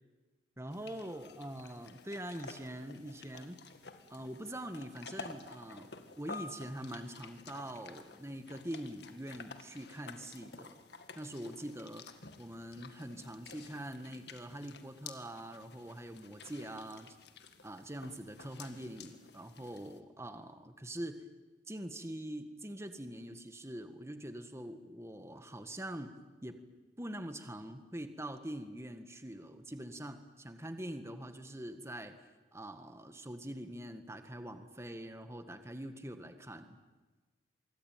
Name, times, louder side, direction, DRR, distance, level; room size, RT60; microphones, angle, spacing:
voice 1, 0.6-3.6 4.1-10.8 11.2-12.1 12.4-17.2 17.6-21.3 21.7-26.1 26.4-26.6 27.0-32.2 32.5-36.8, right 1 dB, 15° right, 8 dB, 1.7 m, -44 dB
sound 1, 0.7-20.0, left 4 dB, 60° left, 1.9 m, -52 dB
26.0 x 23.5 x 9.4 m, 1.2 s
head